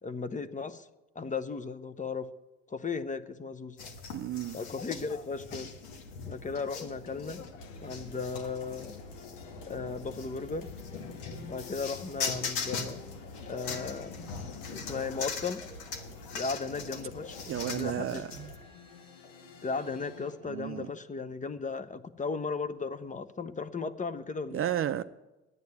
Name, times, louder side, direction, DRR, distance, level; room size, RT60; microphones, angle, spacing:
voice 1, 0.0-0.9 1.1-2.3 2.7-3.8 4.5-5.7 6.2-7.4 7.8-8.9 9.7-10.7 11.4-13.0 13.5-14.1 14.7-15.6 16.3-18.2 19.6-24.6, left 4 dB, 20° left, 0.7 m, -36 dB
sound 1, 3.8-18.6, left 5 dB, 70° left, 1.6 m, -40 dB
voice 2, 4.1-4.6 17.5-18.5 20.4-20.9 24.5-25.0, right 11 dB, 35° right, 0.5 m, -33 dB
sound 2, 7.6-20.4, left 5 dB, 85° left, 1.2 m, -49 dB
9.6 x 9.5 x 9.6 m
hypercardioid pair, 65°, 37 cm